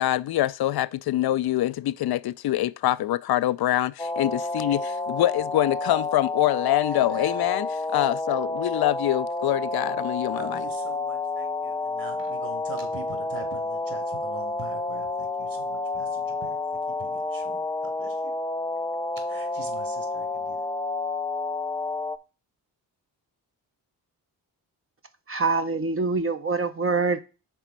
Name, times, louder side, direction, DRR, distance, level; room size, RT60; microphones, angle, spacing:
voice 1, 0.0-10.6, left 14 dB, 60° left, 0.5 m, -25 dB
sound 1, 4.0-22.2, left 3 dB, 10° left, 0.4 m, -30 dB
voice 2, 6.9-7.4 10.0-18.3 19.3-20.7, right 2 dB, 50° right, 2.9 m, -44 dB
voice 3, 25.3-27.2, right 4 dB, 30° right, 0.8 m, -25 dB
6.0 x 4.0 x 4.6 m
supercardioid pair, 50°, 43 cm